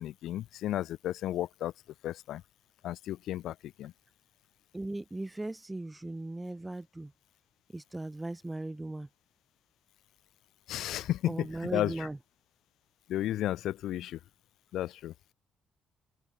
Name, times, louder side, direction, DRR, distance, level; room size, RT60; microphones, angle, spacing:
voice 1, 0.0-1.7 2.0-2.4 2.8-3.9 10.7-11.9 13.1-14.2 14.7-15.1, left 13 dB, 70° left, 3.4 m, -33 dB
voice 2, 4.7-7.1 7.7-9.1 11.2-12.2, right 2 dB, 10° right, 2.6 m, -38 dB
open air
cardioid pair, 175°, 0 cm